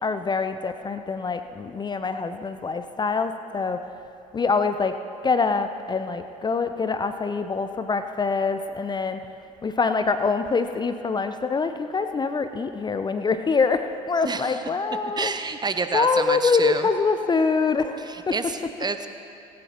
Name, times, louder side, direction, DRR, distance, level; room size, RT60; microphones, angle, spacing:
voice 1, 0.0-3.8 4.3-5.0 5.2-9.2 9.6-15.3 15.9-18.4, left 4 dB, 25° left, 9 dB, 0.7 m, -25 dB
voice 2, 15.2-16.9 18.1-19.1, right 4 dB, 20° right, 9 dB, 0.9 m, -29 dB
18.5 x 17.0 x 3.0 m, 2.9 s
figure-of-eight pair, 55°, 19 cm